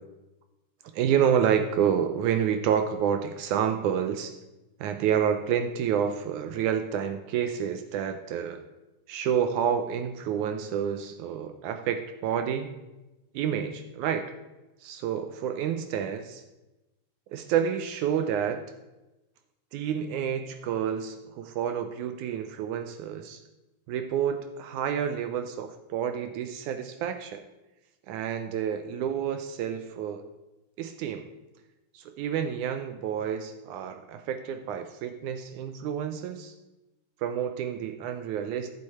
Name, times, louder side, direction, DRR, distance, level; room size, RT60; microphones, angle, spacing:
voice 1, 0.9-4.4 4.8-8.6 9.1-12.7 13.3-14.3 14.8-16.4 17.3-18.6 19.7-23.4 23.9-27.4 28.1-30.2 30.8-31.2 31.9-36.5 37.2-38.7, right 8 dB, 80° right, 7 dB, 2.1 m, -29 dB
15.0 x 6.6 x 4.2 m, 1.0 s
omnidirectional pair, 3.6 m